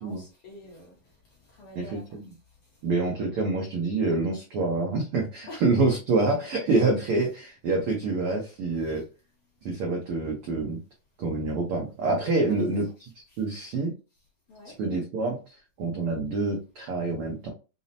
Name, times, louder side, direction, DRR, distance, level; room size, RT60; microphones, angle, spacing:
voice 1, 0.0-2.0 5.5-5.6 12.5-12.7 13.3-13.4 14.5-14.7, left 1 dB, 65° left, 1.5 m, -46 dB
voice 2, 1.7-2.2 2.8-9.0 9.6-10.8 11.2-12.9 13.1-13.9 14.6-17.5, right 3 dB, 80° right, 1.2 m, -27 dB
5.5 x 2.0 x 2.6 m
omnidirectional pair, 3.6 m